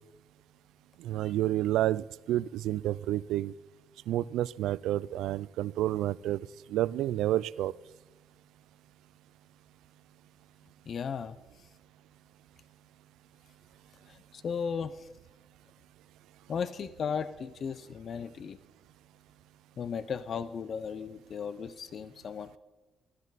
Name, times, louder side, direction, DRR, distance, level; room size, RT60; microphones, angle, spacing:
voice 1, 1.0-3.5 4.1-7.7, right 14 dB, 85° right, 21 dB, 0.3 m, -30 dB
voice 2, 10.9-11.4 14.1-15.1 16.5-18.6 19.8-22.6, left 6 dB, 55° left, 14 dB, 0.6 m, -36 dB
15.0 x 13.0 x 4.1 m, 1.1 s
cardioid pair, 90°, 0 cm